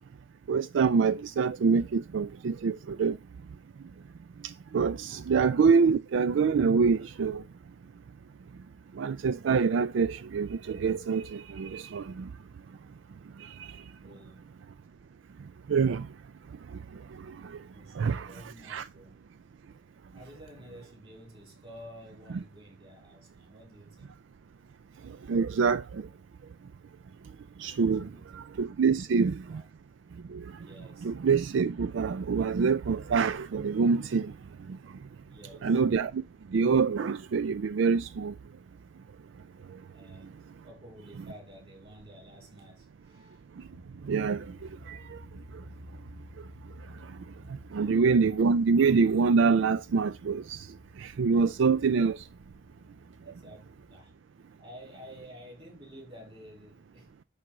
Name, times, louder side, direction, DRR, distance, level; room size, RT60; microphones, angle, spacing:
voice 1, 0.5-3.2 4.7-7.4 9.0-12.3 15.7-16.1 18.0-18.3 18.7-18.8 25.3-26.0 27.6-28.1 28.3-29.6 30.3-30.4 31.0-34.3 35.6-36.2 36.5-38.3 44.1-44.4 44.9-45.0 47.7-50.6 51.0-52.2, right 5 dB, 80° right, 0.4 m, -25 dB
voice 2, 4.8-5.2 14.0-14.5 17.7-19.2 20.1-24.2 28.0-28.6 28.9-29.6 30.6-31.1 35.2-35.7 39.9-40.3 40.6-43.4 47.5-48.0 53.2-54.1 54.6-57.1, equal, 30° right, 3.0 m, -51 dB
sound 1, 43.7-54.1, equal, 50° right, 1.1 m, -52 dB
10.5 x 3.8 x 3.1 m
head